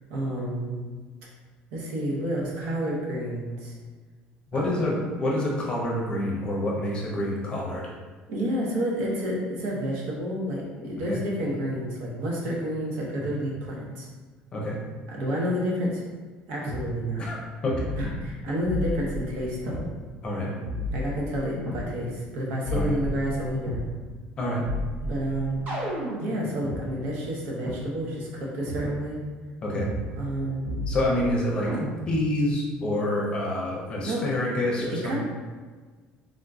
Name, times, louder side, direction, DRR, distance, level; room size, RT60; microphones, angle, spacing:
voice 1, 0.1-0.8 1.7-3.7 4.5-5.1 8.3-14.1 15.1-16.0 16.5-17.2 18.0-19.9 20.9-23.9 25.0-25.7 26.2-29.2 30.2-30.9 34.0-34.2 34.8-35.2, right 1 dB, 75° right, -4 dB, 0.9 m, -30 dB
voice 2, 4.5-7.9 11.1-11.2 13.2-13.3 14.5-14.8 17.2-17.4 17.6-17.8 20.2-20.5 22.7-23.0 24.4-24.6 29.6-29.9 30.9-31.7 32.1-35.2, left 1 dB, 30° left, -2 dB, 0.7 m, -27 dB
sound 1, 16.7-16.8 17.7-18.3 18.7-19.9 20.7-21.9 22.6-23.9 24.7-26.8 27.7-27.8 28.7-28.9 29.7-30.4 30.7-31.3 31.7-32.3, left 1 dB, 45° right, 0.9 m, -32 dB
3.6 x 2.5 x 2.3 m, 1.4 s
cardioid pair, 140°, 4 cm